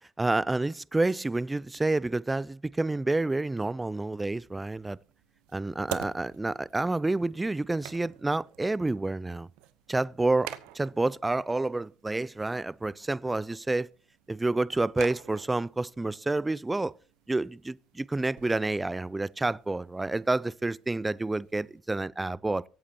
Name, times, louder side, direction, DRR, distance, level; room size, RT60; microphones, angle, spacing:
voice 1, 0.2-5.0 5.5-9.5 9.9-10.5 10.7-13.9 14.3-16.9 17.3-22.6, right 2 dB, 15° right, 0.4 m, -29 dB
sound 1, 4.2-21.8, right 14 dB, 80° right, 0.9 m, -48 dB
23.5 x 8.5 x 2.9 m
hypercardioid pair, 70°, 0 cm